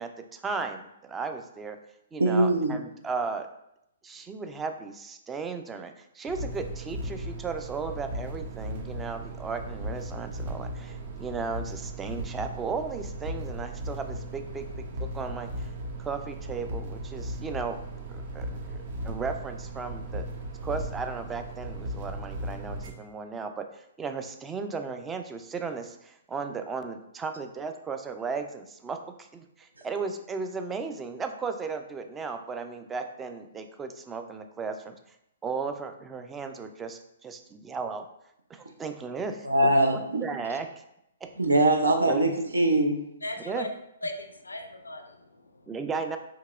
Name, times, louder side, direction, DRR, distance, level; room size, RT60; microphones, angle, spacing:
voice 1, 0.0-1.8 2.1-3.5 4.0-15.7 16.0-17.8 18.1-20.3 20.6-34.9 35.4-38.1 38.5-39.7 40.2-40.8 41.2-41.3 42.1-42.3 43.4-43.7 45.7-46.2, right 5 dB, 15° right, 7 dB, 0.3 m, -35 dB
voice 2, 2.2-2.8 39.4-40.2 41.4-42.9, right 1 dB, 85° right, 4 dB, 0.6 m, -22 dB
sound 1, 6.3-22.9, right 1 dB, 50° right, 0.7 m, -37 dB
voice 3, 43.2-43.7 44.0-45.7, left 1 dB, 90° left, 6 dB, 0.4 m, -38 dB
4.6 x 2.8 x 2.4 m, 0.80 s
figure-of-eight pair, 125°, 0 cm